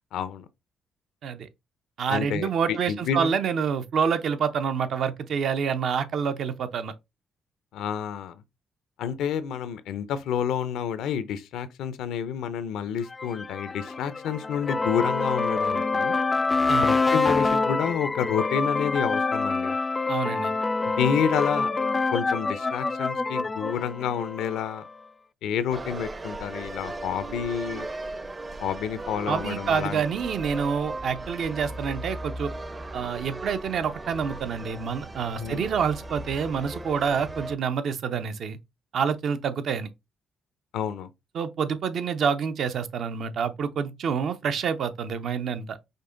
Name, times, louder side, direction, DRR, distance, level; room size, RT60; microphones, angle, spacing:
voice 1, 0.1-0.5 2.1-3.3 7.7-8.4 9.0-16.2 16.8-19.8 20.8-21.7 22.1-24.8 25.4-27.9 28.6-30.0 35.4-35.7 40.7-41.1, left 8 dB, 85° left, 0.6 m, -29 dB
voice 2, 2.0-6.9 16.7-16.9 20.1-20.5 29.3-32.5 32.9-38.6 38.9-39.9 41.3-45.8, right 6 dB, 65° right, 0.6 m, -27 dB
sound 1, 13.1-24.9, left 3 dB, 25° left, 0.3 m, -26 dB
sound 2, 25.7-37.6, right 2 dB, 25° right, 0.5 m, -37 dB
5.3 x 2.2 x 3.8 m
cardioid pair, 90°, 0 cm